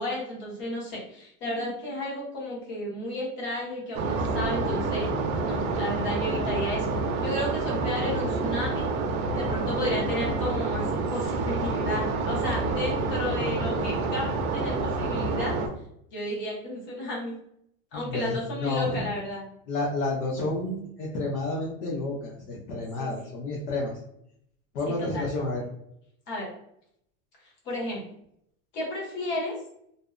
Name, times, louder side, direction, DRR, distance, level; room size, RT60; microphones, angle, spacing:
voice 1, 0.0-5.1 5.4-6.9 7.2-8.9 9.3-15.6 16.1-17.4 17.9-19.5 23.0-23.1 24.9-25.2 26.3-26.5 27.6-28.0 28.7-29.6, left 1 dB, 25° left, -4 dB, 0.8 m, -33 dB
sound 1, 3.9-15.7, right 3 dB, 75° right, 0.6 m, -28 dB
voice 2, 18.0-19.1 19.7-23.9 24.7-25.6, left 2 dB, 75° left, -3 dB, 0.9 m, -30 dB
2.6 x 2.0 x 2.4 m, 0.73 s
supercardioid pair, 165°, 44 cm